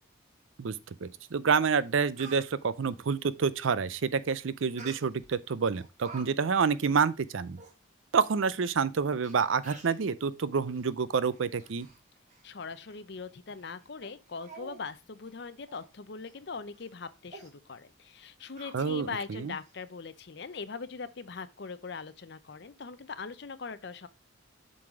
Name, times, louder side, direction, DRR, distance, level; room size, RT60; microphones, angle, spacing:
voice 1, 1.0-7.6 8.1-11.9 18.7-19.5, right 5 dB, 75° right, 0.5 m, -28 dB
Speech, 1.5-1.6 1.9-2.5 4.8-5.3 5.7-6.2 6.6-6.7 7.3-7.4 7.6-7.7 8.5-8.6 9.2-9.3 9.6-10.0 10.7-10.9 11.3-12.0 12.3-12.5 12.9-13.0 13.5-13.7 14.0-14.1 14.4-14.8 15.1-15.3 15.7-15.9 16.2-16.4 16.7-16.9 17.3-17.5 18.6-19.2 19.6-19.7, right 3 dB, 35° right, 1.5 m, -49 dB
voice 2, 12.4-24.1, left 4 dB, 55° left, 0.6 m, -41 dB
7.6 x 4.1 x 4.8 m
head